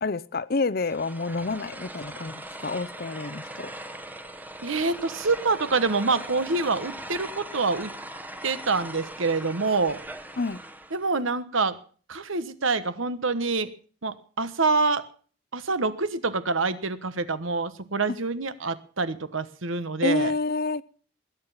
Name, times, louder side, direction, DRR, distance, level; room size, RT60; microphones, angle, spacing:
voice 1, 0.0-3.7 10.4-10.6 20.0-20.8, left 3 dB, 45° left, 18 dB, 0.6 m, -28 dB
sound 1, 0.8-11.1, right 1 dB, 10° right, 1.0 m, -40 dB
voice 2, 4.6-7.9 8.4-10.0 10.9-11.8 12.1-13.7 14.0-15.0 15.5-20.3, right 3 dB, 75° right, 13 dB, 1.2 m, -26 dB
20.5 x 9.2 x 5.7 m, 0.42 s
head